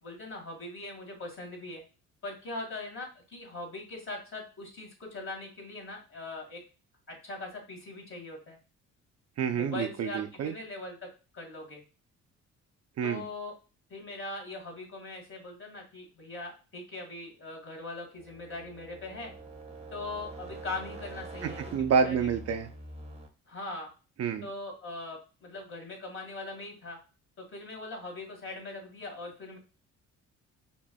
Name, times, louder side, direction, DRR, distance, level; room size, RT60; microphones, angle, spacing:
voice 1, 0.0-1.8 2.2-6.6 7.1-8.6 9.5-11.1 11.3-11.8 13.0-13.5 13.9-19.3 19.9-21.7 22.0-22.3 23.5-23.9 24.4-27.0 27.4-29.6, left 2 dB, 40° left, 0 dB, 1.9 m, -41 dB
voice 2, 9.4-10.5 13.0-13.3 21.4-22.7 24.2-24.5, right 6 dB, 50° right, 7 dB, 0.5 m, -28 dB
sound 1, 18.2-23.3, right 2 dB, 20° right, 0.9 m, -45 dB
4.9 x 2.6 x 2.2 m, 0.34 s
supercardioid pair, 70°, 32 cm